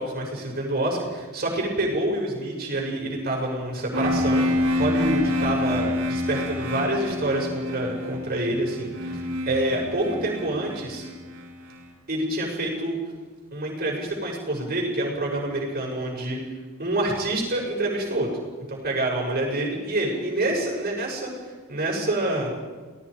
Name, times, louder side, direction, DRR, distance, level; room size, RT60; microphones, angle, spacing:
voice 1, 0.0-11.0 12.1-13.0 13.5-16.4 16.8-18.3 18.7-22.5, right 1 dB, 45° right, -2 dB, 6.5 m, -27 dB
sound 1, 3.9-11.7, left 1 dB, 90° right, 4.2 m, -27 dB
28.5 x 19.0 x 5.1 m, 1.4 s
head